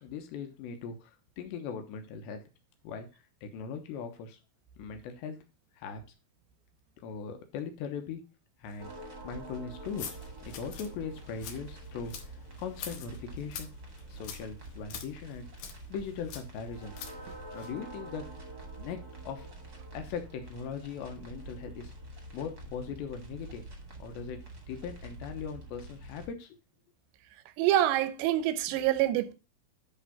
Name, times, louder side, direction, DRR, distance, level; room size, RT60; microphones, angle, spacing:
voice 1, 0.0-2.4 2.8-3.1 3.4-4.4 4.8-5.4 5.8-6.0 7.0-8.2 8.6-8.9 9.2-10.2 10.4-12.1 12.6-13.7 14.1-15.5 15.9-16.9 17.5-18.2 18.7-19.0 19.3-19.5 19.9-21.9 22.3-23.6 24.0-24.4 24.7-26.6, left 6 dB, 85° left, 3.2 m, -39 dB
sound 1, 8.8-26.3, right 2 dB, 40° right, 1.4 m, -47 dB
sound 2, 9.8-17.8, left 6 dB, 65° left, 2.1 m, -46 dB
voice 2, 27.6-29.3, right 13 dB, 85° right, 3.0 m, -26 dB
10.5 x 3.8 x 5.7 m
omnidirectional pair, 4.9 m